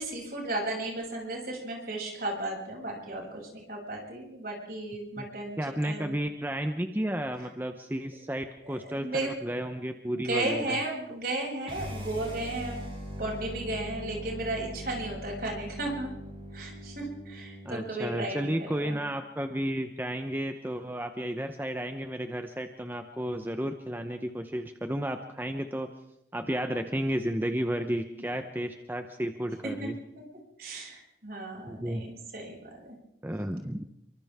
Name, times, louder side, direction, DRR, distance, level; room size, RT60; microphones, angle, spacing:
voice 1, 0.0-6.2 8.6-9.3 10.1-12.8 13.2-16.1 16.5-18.5 18.9-19.0 29.8-29.9 30.6-32.7, right 2 dB, 55° right, -1 dB, 7.4 m, -34 dB
voice 2, 5.6-10.8 17.6-25.9 26.3-30.0 31.7-32.0 33.2-33.9, equal, 10° right, 6 dB, 0.9 m, -32 dB
sound 1, 11.6-17.8, equal, 30° right, 6.7 m, -41 dB
28.5 x 24.5 x 3.7 m, 0.84 s
head